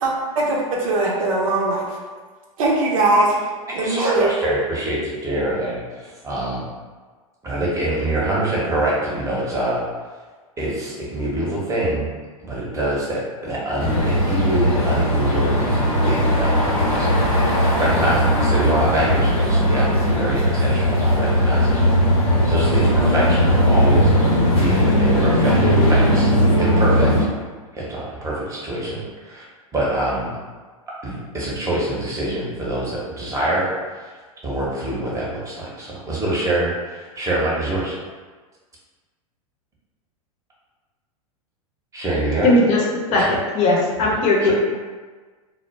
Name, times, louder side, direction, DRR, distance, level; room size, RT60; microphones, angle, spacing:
voice 1, 0.0-1.8 2.6-3.3 3.7-4.3, right 2 dB, 70° right, -2 dB, 0.7 m, -20 dB
voice 2, 3.7-6.6 7.4-9.8 10.6-12.1 12.4-24.1 24.5-27.3 27.7-29.4 29.7-30.3 31.0-34.2 34.4-38.0 41.9-42.5 43.1-43.4 44.4-44.5, right 1 dB, 15° right, -5 dB, 0.8 m, -25 dB
sound 1, 13.8-27.2, equal, 85° left, 0.9 m, -18 dB
voice 3, 42.4-42.8 43.1-43.2 43.5-44.5, left 2 dB, 40° left, -3 dB, 0.7 m, -17 dB
2.1 x 2.1 x 3.2 m, 1.4 s
hypercardioid pair, 100°, 18 cm